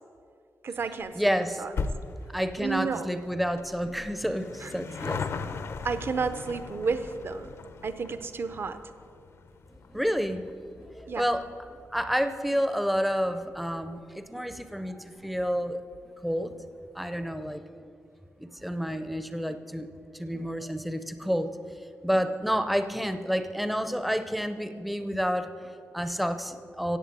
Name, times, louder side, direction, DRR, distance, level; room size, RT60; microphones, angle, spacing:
voice 1, 0.6-1.3 1.6-1.7 2.6-3.1 4.6-4.7 5.0-5.1 5.8-7.5 7.8-8.8 11.1-11.2, right 5 dB, 45° right, 11 dB, 0.7 m, -31 dB
sound 1, 1.0-13.7 14.0-14.1 15.0-15.1 15.3-15.4 15.7-15.8, left 4 dB, 60° left, 0.7 m, -40 dB
voice 2, 1.1-1.6 2.3-5.2 9.9-10.5 10.8-11.4 11.9-15.8 16.2-16.5 16.9-17.6 18.4-19.9 20.1-21.5 22.0-27.0, equal, ahead, 9 dB, 0.6 m, -29 dB
15.5 x 8.1 x 8.4 m, 2.5 s
wide cardioid pair, 175°, 5 cm